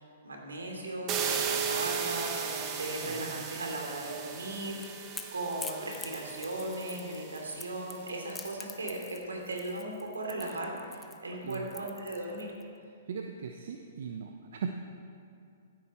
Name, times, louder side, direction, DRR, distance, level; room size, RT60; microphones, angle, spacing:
voice 1, 0.0-12.5, right 1 dB, 90° right, 0 dB, 3.0 m, -37 dB
sound 1, 1.1-7.9, right 7 dB, 30° right, 1.3 m, -36 dB
voice 2, 3.0-3.5 11.4-11.7 12.8-14.7, right 6 dB, 65° right, 4 dB, 0.8 m, -39 dB
Crackle / Crack, 4.4-12.6, left 4 dB, 10° left, 0.8 m, -46 dB
15.5 x 9.6 x 4.5 m, 2.4 s
hypercardioid pair, 125°, 0 cm